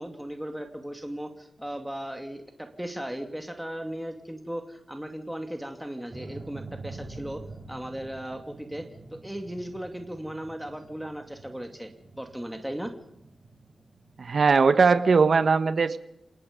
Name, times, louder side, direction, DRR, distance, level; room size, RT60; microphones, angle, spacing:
voice 1, 0.0-7.4 7.7-11.9 12.2-12.9, right 1 dB, 5° right, 5 dB, 2.5 m, -37 dB
sound 1, 6.1-14.3, right 3 dB, 40° right, 4.1 m, -46 dB
voice 2, 14.2-16.0, right 5 dB, 60° right, 11 dB, 1.4 m, -20 dB
29.0 x 18.5 x 5.3 m, 0.80 s
wide cardioid pair, 90°, 0 cm